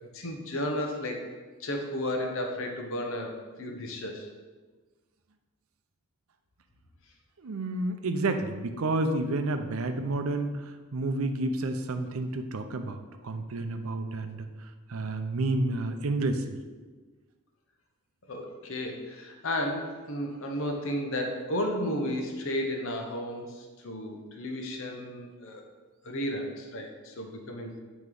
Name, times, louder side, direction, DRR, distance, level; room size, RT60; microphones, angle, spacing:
voice 1, 0.1-1.2 1.6-4.3 18.3-25.6 26.0-27.8, left 1 dB, 65° left, 3 dB, 0.9 m, -33 dB
voice 2, 7.4-10.5 10.9-14.5 14.9-16.6, right 2 dB, 75° right, 8 dB, 0.5 m, -30 dB
9.0 x 3.1 x 3.9 m, 1.3 s
head